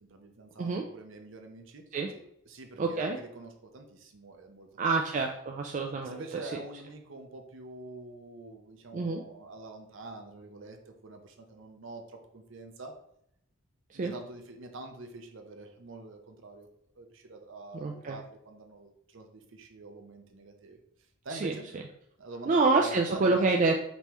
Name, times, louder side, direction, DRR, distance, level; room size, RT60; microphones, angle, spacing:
voice 1, 0.0-1.8 2.1-4.9 5.2-5.4 6.0-12.9 13.9-16.7 17.0-20.8 21.2-21.7 22.2-23.5, right 2 dB, 60° right, 4 dB, 0.7 m, -46 dB
voice 2, 2.8-3.2 4.8-6.2 8.9-9.2 14.0-14.1 17.7-18.2 21.3-21.5 22.5-23.8, right 3 dB, 35° right, 2 dB, 0.3 m, -27 dB
5.3 x 3.0 x 3.0 m, 0.74 s
head